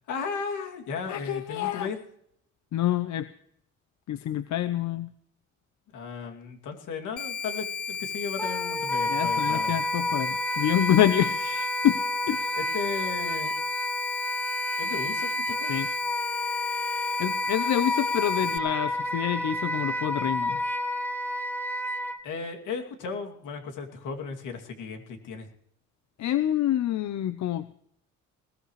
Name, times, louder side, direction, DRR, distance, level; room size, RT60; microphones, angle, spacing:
voice 1, 0.1-2.0 5.9-9.7 12.6-13.6 14.8-15.7 22.2-25.5, left 5 dB, 85° left, 3 dB, 2.7 m, -35 dB
voice 2, 1.1-1.9 2.7-3.3 4.1-5.1 9.1-12.0 12.3-12.6 15.7-15.9 17.2-20.6 26.2-27.7, left 11 dB, 65° left, 12 dB, 0.8 m, -27 dB
sound 1, 7.2-18.6, left 6 dB, 35° left, 0.7 m, -34 dB
Wind instrument woodwind instrument, 8.4-22.2, left 1 dB, 5° left, 1.7 m, -30 dB
20.5 x 15.5 x 3.2 m, 0.70 s
cardioid pair, 90°, 30 cm